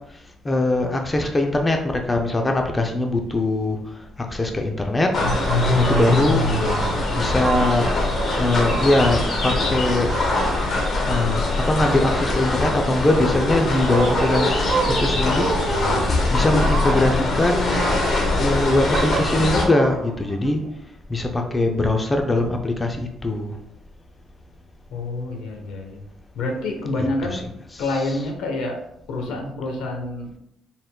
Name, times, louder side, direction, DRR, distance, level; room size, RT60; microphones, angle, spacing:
voice 1, 0.4-3.8 4.3-5.1 5.8-6.5 7.2-7.9 8.4-10.1 11.1-15.5 16.3-17.9 18.4-20.6 21.1-23.0 23.2-23.6 27.0-27.4, left 2 dB, 20° left, 3 dB, 0.4 m, -21 dB
sound 1, 5.1-19.7, left 2 dB, 50° left, 1.0 m, -22 dB
sound 2, 5.2-11.5 11.7-20.7, right 4 dB, 60° right, 0.7 m, -30 dB
voice 2, 24.9-26.0 26.3-27.4 27.8-30.3, left 2 dB, 80° left, 2 dB, 0.9 m, -28 dB
4.3 x 3.7 x 2.2 m, 0.78 s
cardioid pair, 100°, 0 cm